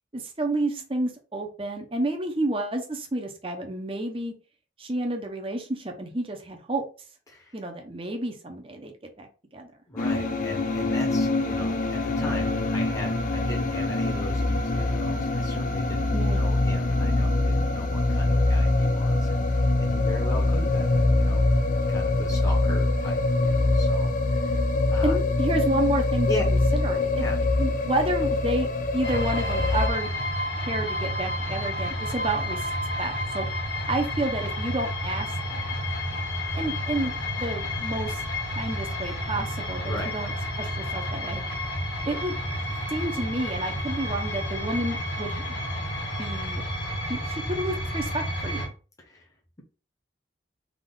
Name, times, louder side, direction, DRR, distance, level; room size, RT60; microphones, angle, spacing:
voice 1, 0.1-4.3 4.8-6.8 7.5-9.7 16.1-16.5 25.0-27.2 27.6-30.1 30.6-32.7 33.0-33.5 33.9-35.7 36.5-37.1 37.4-38.2 38.5-41.4 42.1-42.4 42.9-45.6 46.2-46.7 47.1-48.7, right 2 dB, 30° right, 3 dB, 0.8 m, -30 dB
voice 2, 9.9-21.4 21.9-24.6 24.9-25.2 26.3-26.4 27.2-27.4 39.9-40.1 49.0-49.3, equal, 15° left, -1 dB, 1.0 m, -38 dB
sound 1, 10.0-29.9, left 2 dB, 40° left, 0.5 m, -24 dB
sound 2, 29.0-48.7, left 1 dB, 65° left, 1.5 m, -30 dB
3.6 x 3.2 x 3.9 m, 0.35 s
head